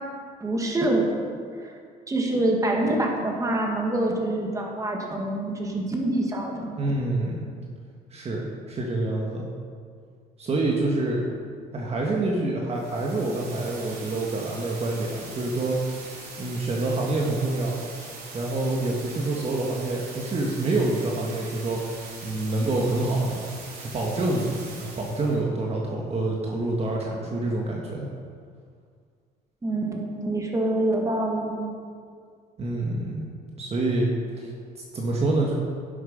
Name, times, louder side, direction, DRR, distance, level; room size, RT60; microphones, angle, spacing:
voice 1, 0.4-1.1 1.6-1.8 2.1-6.8 29.6-31.7, right 1 dB, 20° right, 0 dB, 1.9 m, -26 dB
voice 2, 6.8-7.5 8.1-9.5 10.4-11.3 11.7-17.8 18.3-23.4 23.7-28.1 32.6-33.3 33.6-34.1 34.4-35.5, right 2 dB, 40° right, -2 dB, 1.6 m, -27 dB
sound 1, 12.7-25.4, right 3 dB, 70° right, 2.9 m, -42 dB
11.0 x 7.9 x 5.3 m, 2.1 s
cardioid pair, 110°, 17 cm